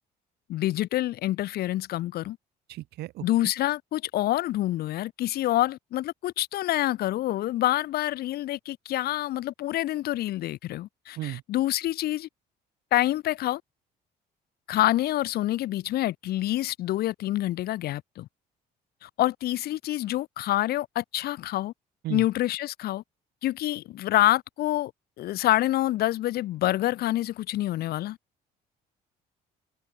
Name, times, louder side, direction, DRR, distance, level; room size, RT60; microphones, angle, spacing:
voice 1, 0.5-2.4 3.2-12.3 12.9-13.6 14.7-18.3 19.0-21.7 22.1-23.0 23.4-24.9 25.2-28.2, left 15 dB, 65° left, 0.9 m, -27 dB
voice 2, 2.7-3.5 11.2-11.4 22.0-22.3, right 16 dB, 75° right, 1.6 m, -35 dB
cardioid pair, 110°, 17 cm